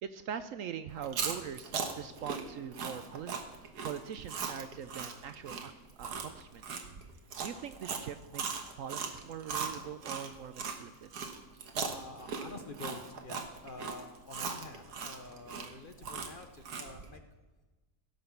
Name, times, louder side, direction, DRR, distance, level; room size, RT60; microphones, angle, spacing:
voice 1, 0.0-3.4 3.8-5.7 6.0-6.8 7.4-8.4 8.8-11.1, right 8 dB, 65° right, 11 dB, 0.9 m, -42 dB
Chewing mastication, 0.9-10.8 11.1-17.1, right 5 dB, 85° right, 1.7 m, -38 dB
voice 2, 11.8-17.2, left 2 dB, 45° left, 6 dB, 0.7 m, -48 dB
16.0 x 5.9 x 7.0 m, 1.2 s
omnidirectional pair, 1.7 m